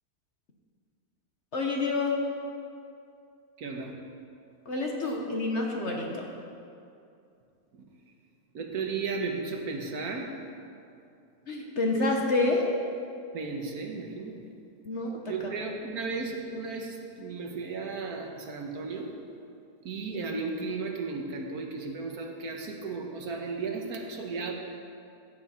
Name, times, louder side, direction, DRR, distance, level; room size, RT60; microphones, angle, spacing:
voice 1, 1.5-2.2 4.7-6.2 11.5-12.7 14.8-15.5, left 2 dB, 50° left, 0 dB, 1.3 m, -28 dB
voice 2, 3.6-3.9 8.5-10.3 13.3-14.4 15.3-19.1 19.8-24.5, right 4 dB, 70° right, 2 dB, 1.6 m, -34 dB
15.0 x 8.2 x 4.3 m, 2.6 s
omnidirectional pair, 1.7 m